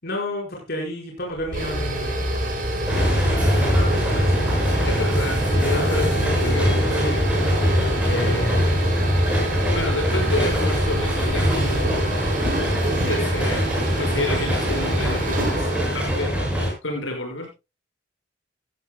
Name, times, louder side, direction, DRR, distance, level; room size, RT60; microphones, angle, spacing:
voice 1, 0.0-2.2 3.0-3.1 3.5-4.5 5.6-6.9 8.1-8.8, left 1 dB, 55° left, -1 dB, 4.8 m, -30 dB
sound 1, 1.3-15.9, right 1 dB, 45° right, 5.4 m, -27 dB
sound 2, 2.9-16.7, equal, 5° right, 6.4 m, -22 dB
voice 2, 4.8-6.7 7.0-7.3 9.7-12.0 13.0-15.7 15.9-16.3 16.8-17.5, left 2 dB, 85° left, 3 dB, 6.2 m, -29 dB
16.0 x 14.5 x 2.2 m, 0.27 s
head